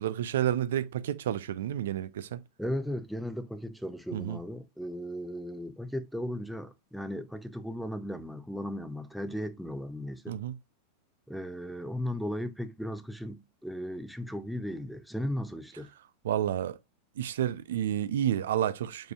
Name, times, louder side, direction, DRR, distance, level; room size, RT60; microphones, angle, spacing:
voice 1, 0.0-2.4 4.1-4.4 10.3-10.6 16.2-16.8 17.2-19.1, right 11 dB, 60° right, 0.4 m, -30 dB
voice 2, 2.6-10.4 11.3-15.9, equal, ahead, 0.5 m, -36 dB
4.9 x 3.8 x 2.3 m
figure-of-eight pair, 90°, 0 cm